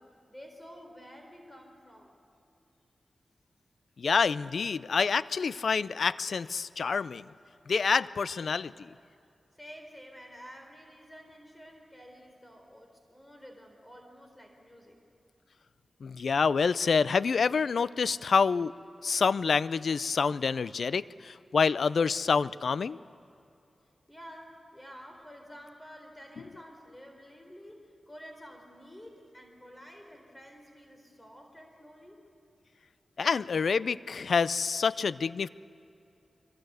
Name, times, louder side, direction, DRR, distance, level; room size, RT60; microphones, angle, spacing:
voice 1, 0.0-2.2 9.5-15.0 24.1-32.2, equal, 15° left, 3 dB, 4.1 m, -50 dB
voice 2, 4.0-7.3 7.7-8.9 16.0-18.7 19.0-23.0 33.2-35.5, left 5 dB, 75° left, 17 dB, 0.5 m, -27 dB
25.5 x 24.0 x 8.2 m, 2.7 s
wide cardioid pair, 70°, 0 cm